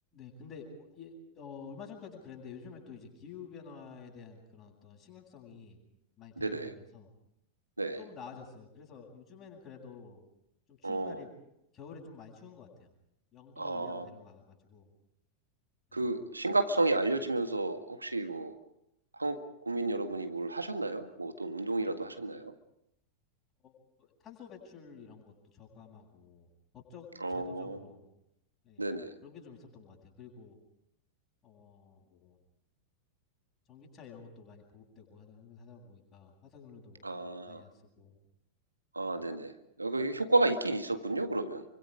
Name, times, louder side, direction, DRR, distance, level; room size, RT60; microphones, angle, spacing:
voice 1, 0.1-5.8 6.2-7.1 7.9-10.2 10.7-11.3 11.7-12.9 13.3-14.9 15.9-16.1 23.6-23.7 24.0-26.5 26.7-28.1 28.6-30.6 31.4-32.4 33.7-37.0 37.5-38.1, left 5 dB, 25° left, -6 dB, 7.8 m, -50 dB
voice 2, 6.4-6.7 7.8-8.0 10.8-11.2 13.6-14.1 15.9-18.6 19.1-22.5 27.2-27.8 28.8-29.1 37.0-37.6 38.9-41.7, right 2 dB, 80° right, 8 dB, 1.8 m, -32 dB
29.5 x 25.0 x 5.1 m, 0.83 s
figure-of-eight pair, 90°, 0 cm